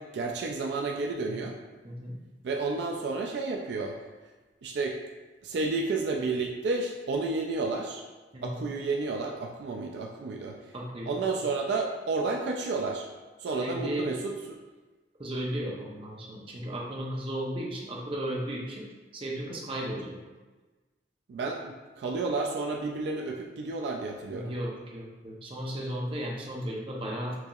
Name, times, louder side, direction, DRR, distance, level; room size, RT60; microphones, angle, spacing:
voice 1, 0.0-1.6 2.4-3.9 4.6-5.0 5.4-8.0 8.4-10.6 11.1-13.1 13.4-14.6 21.3-24.5, right 3 dB, 70° right, 1 dB, 0.3 m, -31 dB
voice 2, 1.8-2.2 8.3-8.7 10.7-11.1 13.6-14.1 15.2-18.8 19.1-20.2 24.3-27.4, right 1 dB, 30° right, -3 dB, 0.6 m, -35 dB
4.6 x 2.8 x 2.3 m, 1.3 s
head